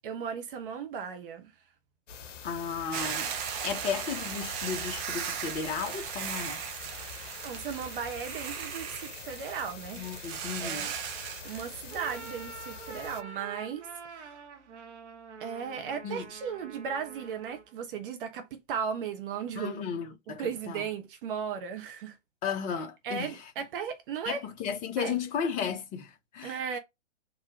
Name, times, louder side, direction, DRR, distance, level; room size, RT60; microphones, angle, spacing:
voice 1, 0.0-1.5 7.4-10.2 10.6-14.3 15.4-19.8 20.3-22.2 23.0-24.4 25.0-25.2 26.4-26.8, right 7 dB, 45° right, 1.0 m, -36 dB
sound 1, 2.1-13.2, left 6 dB, 70° left, 0.8 m, -45 dB
voice 2, 2.4-3.3 3.6-6.6 9.9-10.9 16.0-16.3 19.6-20.8 22.4-23.3 24.3-26.6, left 6 dB, 20° left, 0.8 m, -34 dB
Hiss / Boiling, 2.9-12.3, right 8 dB, 25° right, 0.6 m, -37 dB
sound 2, 11.8-17.8, right 5 dB, 65° right, 1.2 m, -46 dB
3.8 x 2.9 x 4.4 m
figure-of-eight pair, 115°, 37 cm